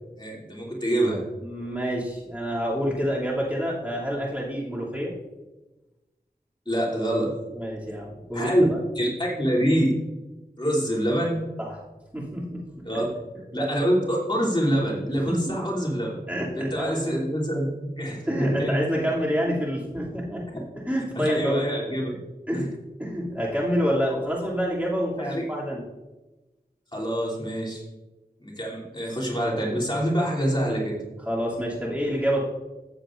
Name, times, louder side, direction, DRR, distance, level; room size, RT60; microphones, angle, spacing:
voice 1, 0.2-1.2 6.6-7.4 8.3-8.6 8.9-9.9 10.6-11.4 12.8-13.1 13.5-16.2 16.6-18.8 20.5-20.6 21.1-22.1 22.5-22.6 25.2-25.4 26.9-27.8 28.4-30.9, equal, 25° left, -4 dB, 3.1 m, -25 dB
voice 2, 1.4-5.1 7.5-8.8 11.6-11.8 12.1-12.6 15.3-15.4 16.3-17.1 18.3-20.4 20.9-21.6 22.5-22.7 23.0-25.8 31.3-32.4, equal, 10° right, -6 dB, 2.8 m, -27 dB
15.5 x 8.1 x 2.6 m, 1.1 s
wide cardioid pair, 50°, 17 cm